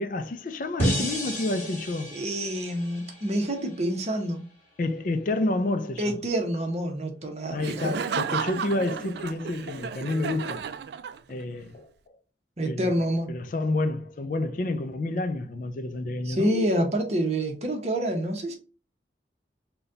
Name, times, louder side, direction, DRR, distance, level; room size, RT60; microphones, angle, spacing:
voice 1, 0.0-2.1 4.8-6.2 7.5-10.7 11.3-11.9 12.7-13.0 13.3-16.5, left 2 dB, 45° left, 0.4 m, -29 dB
sound 1, 0.8-3.9, equal, 15° left, 1.3 m, -31 dB
voice 2, 2.1-4.4 6.0-8.0 12.6-13.3 16.2-18.6, right 1 dB, 35° right, 0.8 m, -27 dB
Laughter, 7.6-11.5, right 7 dB, 70° right, 0.3 m, -33 dB
4.0 x 2.2 x 3.8 m
head